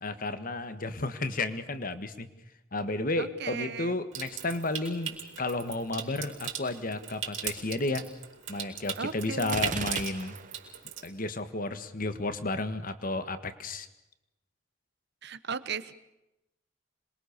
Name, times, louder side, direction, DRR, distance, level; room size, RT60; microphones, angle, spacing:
voice 1, 0.0-2.3 2.7-8.1 8.5-10.4 11.0-13.9, left 2 dB, 45° left, 10 dB, 1.6 m, -32 dB
voice 2, 3.2-4.0 9.0-9.6 15.2-15.9, right 5 dB, 55° right, 13 dB, 1.2 m, -36 dB
Water tap faucet / Sink (filling or washing) / Trickle dribble, 4.1-11.1, right 9 dB, 70° right, 4.6 m, -39 dB
Gunshot gunfire, 9.4-10.7, right 5 dB, 40° right, 0.9 m, -36 dB
26.5 x 22.0 x 6.7 m, 0.92 s
head